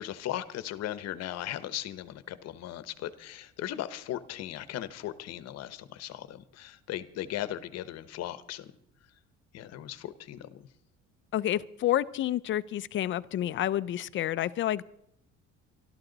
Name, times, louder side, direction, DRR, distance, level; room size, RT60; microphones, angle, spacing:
voice 1, 0.0-8.7 9.5-10.6, left 12 dB, 55° left, 14 dB, 1.0 m, -37 dB
voice 2, 11.3-14.8, left 12 dB, 40° left, 16 dB, 0.5 m, -29 dB
25.0 x 12.5 x 4.0 m, 0.77 s
cardioid pair, 155°, 30 cm